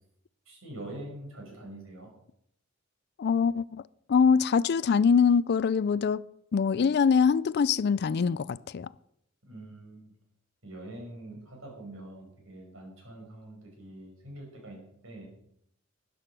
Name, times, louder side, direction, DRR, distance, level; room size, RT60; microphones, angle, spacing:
voice 1, 0.5-2.1 9.4-10.1 10.6-15.3, right 1 dB, 85° right, 5.2 m, -44 dB
voice 2, 3.2-3.8 4.1-6.2 6.5-8.9, left 6 dB, 55° left, 0.4 m, -23 dB
12.5 x 9.3 x 6.0 m
head